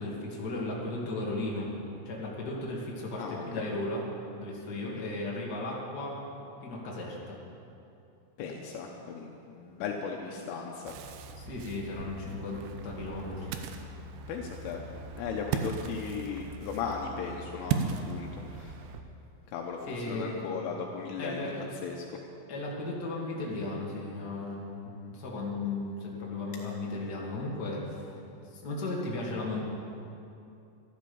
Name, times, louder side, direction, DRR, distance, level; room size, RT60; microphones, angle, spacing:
voice 1, 0.0-1.7 2.0-4.0 4.4-6.2 6.6-7.4 11.4-13.9 19.9-20.4 21.2-21.7 22.5-28.1 28.5-29.6, left 2 dB, 50° left, -4 dB, 1.1 m, -35 dB
voice 2, 3.2-3.6 5.0-5.1 8.4-10.9 14.3-14.8 15.2-18.3 18.5-18.7 19.5-19.8 20.1-21.5 21.8-22.0, left 6 dB, 80° left, 1 dB, 3.3 m, -36 dB
Ocean, 10.9-19.0, right 6 dB, 90° right, 2.4 m, -37 dB
14.0 x 13.0 x 7.0 m, 2.7 s
omnidirectional pair, 6.0 m